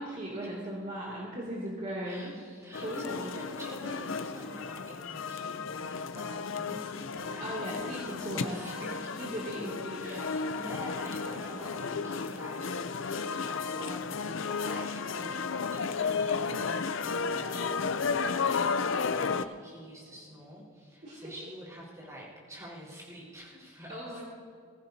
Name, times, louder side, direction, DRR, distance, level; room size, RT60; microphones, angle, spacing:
voice 1, 0.0-2.3 2.8-3.3 7.4-8.7 9.1-10.4 11.2-11.6 21.0-21.3 23.9-24.3, right 1 dB, 40° right, -6 dB, 2.6 m, -38 dB
voice 2, 2.0-9.3 9.9-15.4 15.7-17.9 18.2-24.3, equal, 15° right, -5 dB, 4.5 m, -47 dB
sound 1, 2.7-19.4, left 5 dB, 85° left, 0.6 m, -33 dB
21.0 x 15.5 x 2.8 m, 2.1 s
head